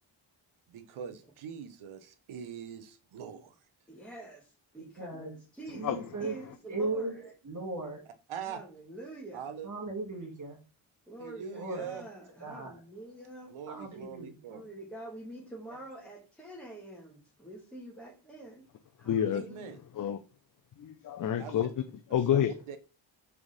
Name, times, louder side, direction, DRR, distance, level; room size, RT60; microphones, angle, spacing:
voice 1, 0.7-3.5 8.3-8.6 9.3-9.7 11.2-12.0 13.5-14.7 19.3-19.8 21.4-21.5 22.3-22.4 22.7-22.8, right 7 dB, 85° right, 0.7 m, -42 dB
voice 2, 3.9-5.3 5.5-7.3 8.4-9.5 11.1-13.5 14.5-18.7 19.0-19.7, right 1 dB, ahead, 1.2 m, -46 dB
voice 3, 5.0-5.3 5.7-6.3 6.7-7.1 7.4-8.0 9.6-10.6 11.5-11.9 12.4-12.8 13.7-14.6, right 3 dB, 40° right, 1.4 m, -37 dB
voice 4, 5.8-6.5 19.0-19.4 19.9-20.2 20.8-22.5, left 9 dB, 45° left, 0.4 m, -30 dB
3.5 x 3.4 x 3.9 m
cardioid pair, 65°, 48 cm